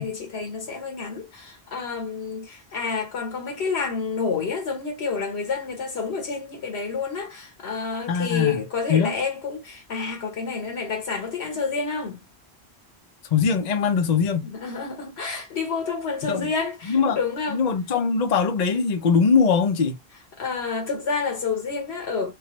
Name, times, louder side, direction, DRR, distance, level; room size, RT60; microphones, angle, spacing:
voice 1, 0.0-12.2 14.4-17.7 20.4-22.3, left 5 dB, 75° left, 1.2 m, -29 dB
voice 2, 8.1-9.1 13.3-14.5 16.2-16.5 16.8-17.2 17.5-19.9, left 5 dB, 50° left, 0.6 m, -21 dB
3.1 x 2.2 x 2.9 m
omnidirectional pair, 1.1 m